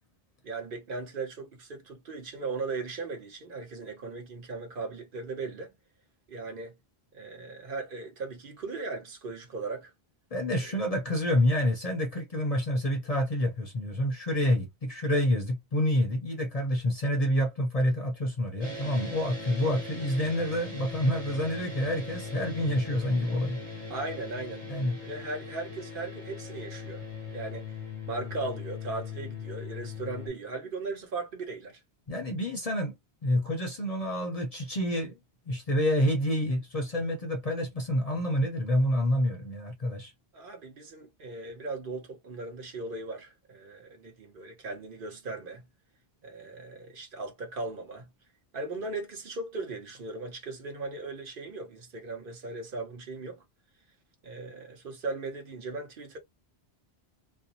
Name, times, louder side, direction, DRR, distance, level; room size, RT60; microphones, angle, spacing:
voice 1, 0.4-5.7 6.3-6.7 7.1-9.9 10.6-10.9 23.9-24.7 25.0-27.0 27.3-27.8 28.1-31.8 40.3-45.6 46.2-48.1 48.5-53.4 54.2-56.2, right 3 dB, 60° right, 0.9 m, -38 dB
voice 2, 10.3-23.6 24.7-25.0 32.1-32.9 33.2-35.2 35.5-40.1, left 1 dB, 45° left, 0.6 m, -28 dB
sound 1, 18.6-30.3, left 4 dB, 25° right, 1.2 m, -40 dB
2.5 x 2.0 x 2.7 m
omnidirectional pair, 1.0 m